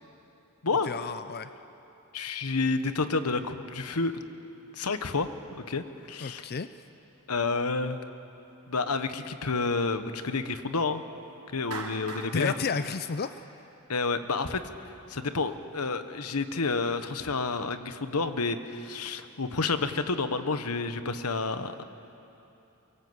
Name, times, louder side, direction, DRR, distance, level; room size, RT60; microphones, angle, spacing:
voice 1, 0.8-1.5 6.2-6.7 12.3-13.4, left 5 dB, 45° left, 11 dB, 0.5 m, -31 dB
voice 2, 2.1-4.2 4.7-5.3 5.7-6.4 7.3-8.0 8.7-11.0 11.5-12.5 13.9-14.6 15.1-21.8, left 3 dB, 85° left, 10 dB, 1.2 m, -29 dB
Clapping, 11.7-14.0, right 4 dB, 85° right, 2.8 m, -41 dB
23.5 x 23.5 x 8.0 m, 2.9 s
head